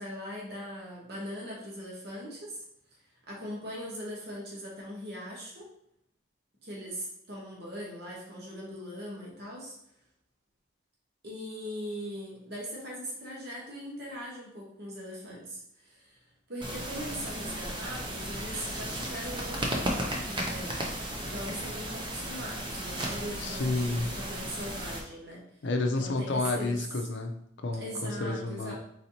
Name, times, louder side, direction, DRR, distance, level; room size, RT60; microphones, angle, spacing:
voice 1, 0.0-2.6 3.3-5.7 6.6-9.8 11.2-16.2 16.5-20.8 21.1-25.4 26.0-26.8 27.8-28.7, equal, 55° right, -4 dB, 1.1 m, -40 dB
sound 1, 16.6-25.0, right 1 dB, 25° right, 0.6 m, -35 dB
voice 2, 23.4-24.1 25.6-28.7, left 2 dB, 65° left, 5 dB, 0.5 m, -30 dB
4.3 x 4.1 x 2.8 m, 0.75 s
head